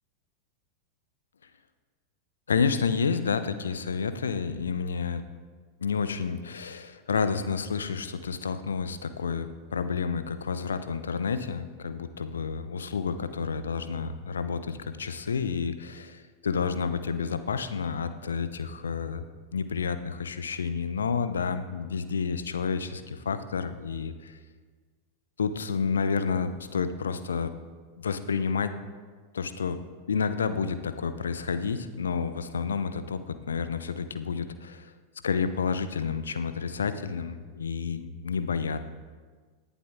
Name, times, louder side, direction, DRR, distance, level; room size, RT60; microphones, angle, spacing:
voice 1, 2.5-5.2 5.8-19.3 19.5-24.4 25.4-27.5 28.0-28.7 29.3-29.8 30.1-34.9 35.2-38.8, left 5 dB, 70° left, 11 dB, 0.8 m, -30 dB
18.5 x 11.0 x 3.7 m, 1.5 s
figure-of-eight pair, 90°, 0 cm